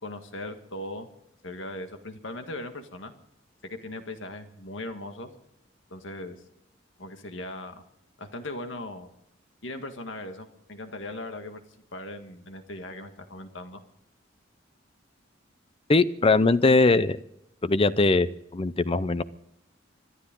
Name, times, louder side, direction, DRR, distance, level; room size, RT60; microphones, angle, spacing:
voice 1, 0.0-1.1 1.4-3.1 3.6-5.3 5.9-6.4 7.0-7.8 8.2-9.1 9.6-11.6 11.9-13.8, left 1 dB, 75° left, 6 dB, 1.8 m, -38 dB
voice 2, 15.9-17.2 17.6-18.3 18.5-19.2, left 3 dB, 30° left, 16 dB, 0.5 m, -21 dB
26.5 x 11.5 x 3.8 m, 0.80 s
head